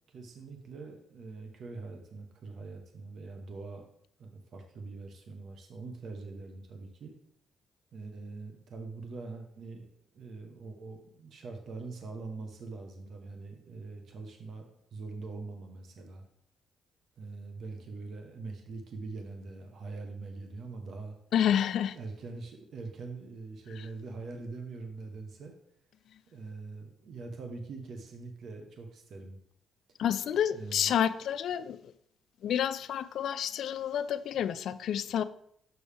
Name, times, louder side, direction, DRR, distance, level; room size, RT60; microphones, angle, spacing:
voice 1, 0.1-3.8 4.2-7.1 7.9-9.9 10.1-16.2 17.2-21.1 21.9-25.5 26.3-29.4 30.5-31.0 34.3-34.4, right 3 dB, 60° right, 4 dB, 1.1 m, -43 dB
voice 2, 21.3-22.0 30.0-31.9 32.4-35.2, left 9 dB, 70° left, 13 dB, 0.3 m, -29 dB
6.9 x 6.1 x 3.4 m, 0.69 s
cardioid pair, 90°, 0 cm